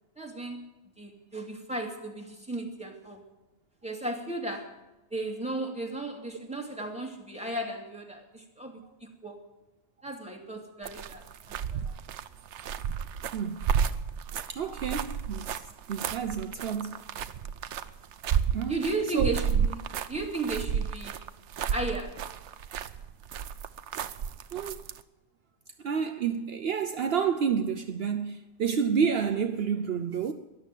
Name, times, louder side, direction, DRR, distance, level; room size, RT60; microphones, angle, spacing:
voice 1, 0.2-0.6 1.0-3.2 3.8-4.7 5.1-9.4 10.0-11.2 11.7-11.8 18.7-19.8 20.1-21.2 21.7-22.2, right 2 dB, 5° right, 2.3 m, -35 dB
sound 1, 10.8-25.0, right 7 dB, 85° right, 1.0 m, -32 dB
voice 2, 13.3-13.8 14.5-16.9 18.5-18.8 19.1-19.4 24.5-24.8 25.8-30.3, right 7 dB, 65° right, 1.0 m, -29 dB
13.5 x 11.5 x 9.1 m
omnidirectional pair, 1.2 m